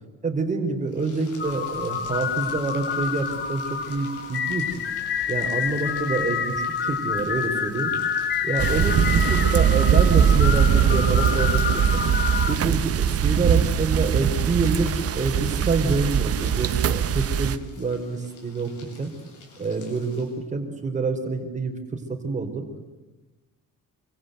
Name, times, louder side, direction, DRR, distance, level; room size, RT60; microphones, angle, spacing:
voice 1, 0.2-4.8 5.3-7.9 8.4-12.0 12.5-18.7 19.0-19.1 19.6-22.7, right 3 dB, 20° right, 5 dB, 4.3 m, -27 dB
sound 1, 0.8-20.5, left 3 dB, 60° left, 7.7 m, -49 dB
sound 2, 1.4-12.6, left 7 dB, 30° left, 1.4 m, -28 dB
sound 3, 8.6-17.6, right 8 dB, 45° right, 1.2 m, -21 dB
27.5 x 25.0 x 8.0 m, 1.2 s
cardioid pair, 175°, 33 cm